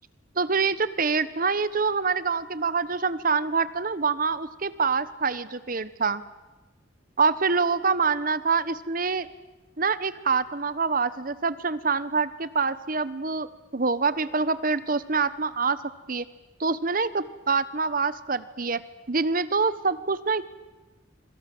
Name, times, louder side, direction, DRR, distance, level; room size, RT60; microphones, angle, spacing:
voice 1, 0.4-6.2 7.2-9.3 9.8-15.8 16.1-16.3 16.6-18.8 19.1-20.4, right 4 dB, 45° right, 16 dB, 1.1 m, -25 dB
26.5 x 25.5 x 7.8 m, 1.2 s
head